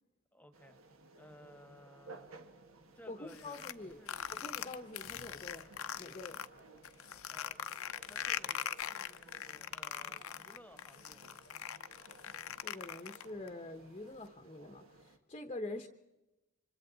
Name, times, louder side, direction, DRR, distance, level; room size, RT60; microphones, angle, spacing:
voice 1, 0.3-0.8 1.1-2.3 2.9-4.2 7.3-7.6 8.1-11.5, left 1 dB, 10° left, 8 dB, 1.3 m, -58 dB
sound 1, 0.5-15.2, right 3 dB, 70° right, 1.6 m, -58 dB
voice 2, 3.1-4.0 4.3-5.6 6.0-6.4 12.6-15.9, left 2 dB, 25° left, 6 dB, 0.9 m, -45 dB
sound 2, 3.3-6.5 6.8-13.5, left 9 dB, 75° left, 0.7 m, -41 dB
29.5 x 25.0 x 4.0 m, 1.0 s
head